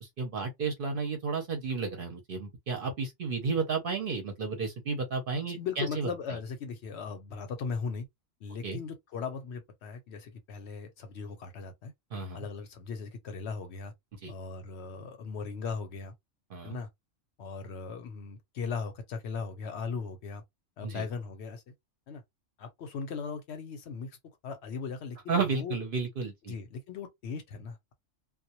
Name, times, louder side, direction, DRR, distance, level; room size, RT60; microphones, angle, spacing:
voice 1, 0.0-6.1 8.6-8.8 12.1-12.4 14.2-14.3 16.5-16.8 20.8-21.0 25.3-26.5, right 4 dB, 55° right, 0.7 m, -32 dB
voice 2, 5.5-8.1 8.4-11.9 12.3-13.9 14.3-16.1 16.6-16.9 17.4-20.4 20.8-21.7 22.1-22.2 22.6-24.2 24.4-25.8 26.5-27.9, left 5 dB, 65° left, 0.8 m, -38 dB
2.1 x 2.0 x 2.8 m
omnidirectional pair, 1.3 m